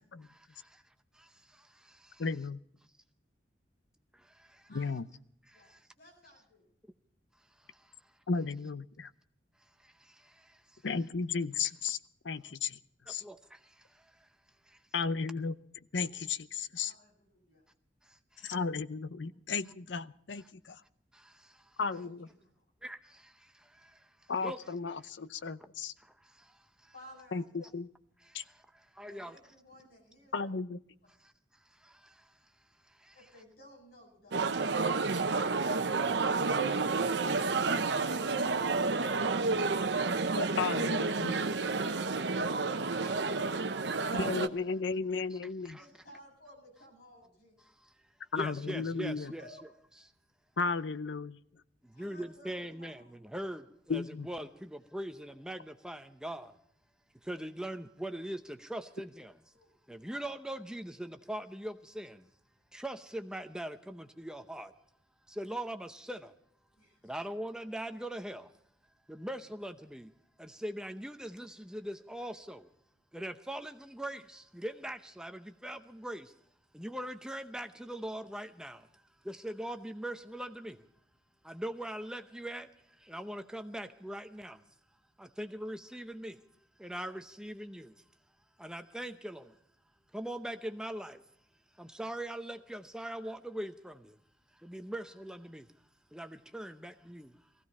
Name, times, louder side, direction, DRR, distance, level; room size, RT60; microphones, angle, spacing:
voice 1, 0.2-0.8 1.1-2.3 4.1-4.7 5.4-5.9 7.6-8.1 9.8-10.8 13.1-14.3 14.6-14.8 18.0-18.6 20.4-20.5 21.1-21.8 22.8-24.6 26.0-26.9 28.2-29.4 31.2-32.3 32.8-33.3 45.3-45.9 47.6-47.9 48.3-49.5 51.8-56.5 57.2-59.4 59.9-62.3 62.7-64.7 65.3-66.3 67.0-68.5 69.1-70.1 70.4-72.7 73.1-76.3 76.7-78.9 79.2-80.8 81.4-84.6 85.2-86.4 86.8-88.0 88.6-89.6 90.1-91.2 91.7-94.2 94.5-95.7 96.1-97.4, right 1 dB, 5° right, 0.7 m, -42 dB
voice 2, 2.2-2.6 4.7-5.1 8.3-9.1 10.8-12.0 12.2-12.8 13.1-13.2 14.9-15.5 15.9-16.9 18.4-20.8 21.8-22.3 24.3-25.9 27.3-27.9 28.3-28.4 30.3-30.8 40.4-41.7 44.1-45.8 48.3-49.3 50.6-51.4 53.9-54.3, left 4 dB, 80° left, 0.7 m, -34 dB
voice 3, 6.0-6.7 15.9-16.2 16.7-17.6 19.6-19.7 21.9-22.5 26.9-27.7 29.1-30.6 33.1-35.9 38.2-40.1 41.7-44.0 45.8-47.6 49.4-49.6 51.9-53.1 59.5-59.7 66.8-67.1, left 1 dB, 60° left, 7.6 m, -55 dB
sound 1, 34.3-44.5, right 4 dB, 70° right, 0.8 m, -30 dB
19.5 x 15.5 x 4.2 m
head